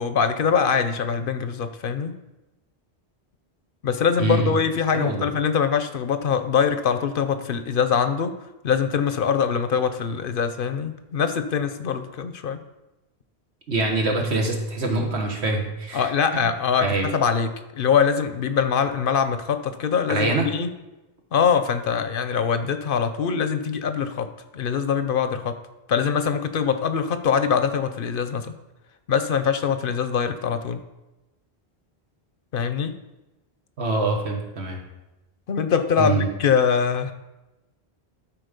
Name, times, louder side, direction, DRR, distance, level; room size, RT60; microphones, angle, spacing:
voice 1, 0.0-2.2 3.8-8.3 8.6-12.6 15.9-20.7 21.3-25.6 25.9-28.5 29.1-30.8 32.5-33.0 35.5-37.1, left 6 dB, 60° left, 10 dB, 0.8 m, -23 dB
voice 2, 4.2-4.6 4.9-5.3 13.7-16.5 16.8-17.1 20.1-20.5 33.8-34.8 36.0-36.3, right 2 dB, 85° right, 1 dB, 1.7 m, -24 dB
12.5 x 4.2 x 5.2 m, 1.0 s
omnidirectional pair, 1.1 m